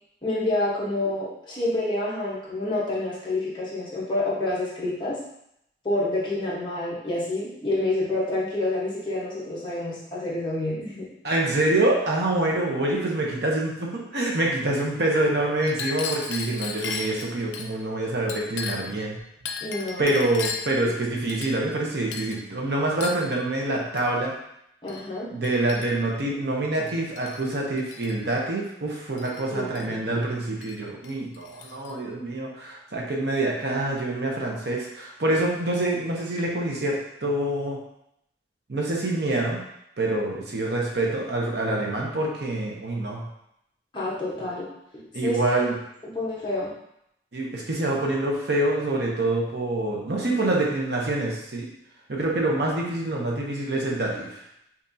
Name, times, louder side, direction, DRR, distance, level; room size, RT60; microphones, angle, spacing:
voice 1, 0.2-5.2 5.8-11.1 12.6-12.7 19.6-20.1 24.8-25.3 29.5-30.2 43.9-44.6 44.9-45.6 46.0-46.7, left 2 dB, 25° left, -7 dB, 1.1 m, -28 dB
voice 2, 11.2-19.2 20.0-24.3 25.3-37.8 38.7-39.6 40.0-43.3 45.1-45.7 47.3-51.7 52.1-54.4, right 2 dB, 65° right, -2 dB, 0.8 m, -26 dB
Chink clink, 15.6-17.7 18.3-19.0 19.5-20.8 21.3-21.8 22.1-22.4 23.0-23.3 24.0-24.1 24.9-25.0 25.4-26.1 26.9-27.5 27.8-28.1 29.2-29.9 30.6-30.8 31.0-31.9, left 5 dB, 85° left, 0.5 m, -35 dB
5.4 x 2.5 x 2.7 m, 0.78 s
head